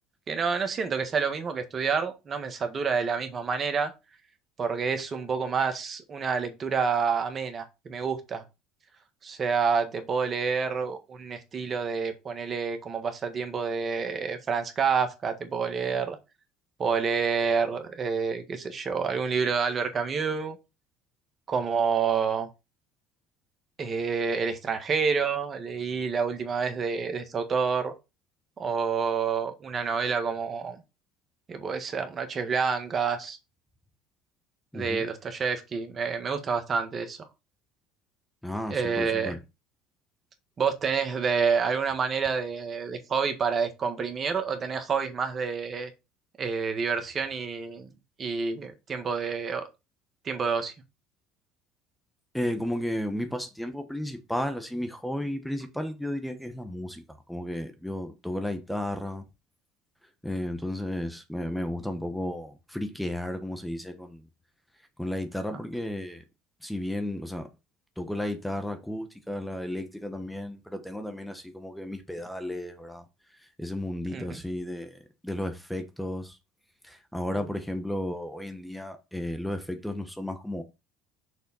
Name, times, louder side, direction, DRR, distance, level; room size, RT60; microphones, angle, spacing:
voice 1, 0.3-3.9 4.6-8.4 9.2-16.2 16.8-20.6 21.5-22.5 23.8-27.9 28.6-30.8 31.5-33.4 34.7-37.2 38.7-39.4 40.6-45.9 46.4-47.9 48.2-49.7 50.2-50.7 65.5-65.6 74.1-74.4 77.3-77.5, right 5 dB, 35° right, 1.6 m, -28 dB
voice 2, 34.7-35.0 38.4-39.4 52.3-59.2 60.2-64.2 65.0-66.2 66.6-67.5 68.0-73.1 73.4-76.4 76.8-80.6, left 1 dB, 5° left, 1.3 m, -33 dB
6.6 x 4.0 x 5.6 m
supercardioid pair, 85°, 0 cm